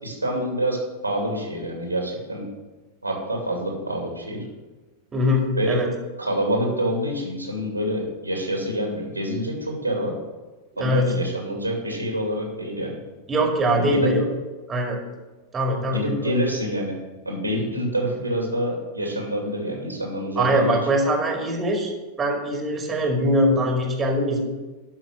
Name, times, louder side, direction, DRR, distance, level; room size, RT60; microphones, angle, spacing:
voice 1, 0.0-2.5 3.0-4.4 5.5-5.8 6.2-10.1 10.8-13.0 13.7-14.1 15.9-16.9 17.2-20.8, equal, 85° right, 0 dB, 2.6 m, -27 dB
voice 2, 5.1-5.9 10.7-11.1 13.3-14.2 14.7-15.0 15.5-16.0 20.4-21.9 22.2-24.4, equal, 20° right, 1 dB, 2.2 m, -22 dB
12.0 x 5.9 x 6.3 m, 1.2 s
figure-of-eight pair, 90°, 0 cm